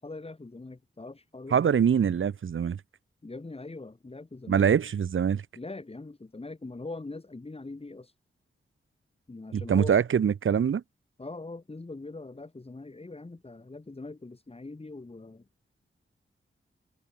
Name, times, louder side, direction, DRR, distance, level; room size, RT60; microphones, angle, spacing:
voice 1, 0.0-1.6 3.2-4.7 5.5-8.1 9.3-10.0 11.2-15.4, left 3 dB, 30° left, 6.4 m, -42 dB
voice 2, 1.5-2.8 4.5-5.4 9.5-10.8, right 7 dB, 75° right, 1.0 m, -24 dB
wide cardioid pair, 110°, 21 cm